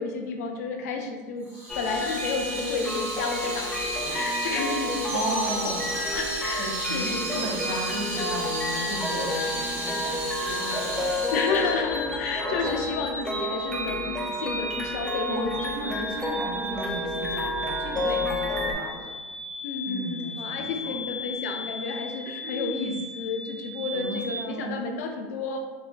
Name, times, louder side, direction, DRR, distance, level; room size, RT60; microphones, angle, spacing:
voice 1, 0.0-1.5 1.8-5.4 6.1-7.4 11.3-15.8 18.0-18.3 19.6-25.6, left 4 dB, 90° left, 4 dB, 0.4 m, -31 dB
Water tap faucet / Sink (filling or washing), 1.5-12.8, right 1 dB, 80° right, 1.1 m, -34 dB
sound 1, 1.7-18.7, left 1 dB, 10° left, 0.3 m, -31 dB
sound 2, 5.1-24.4, equal, 30° right, 0.7 m, -37 dB
voice 2, 5.1-5.9 6.6-11.0 15.3-15.5 15.7-19.1 19.8-21.0 22.4-23.0 23.9-24.8, right 2 dB, 60° right, -1 dB, 0.6 m, -35 dB
2.6 x 2.3 x 2.2 m, 1.3 s
supercardioid pair, 115°, 8 cm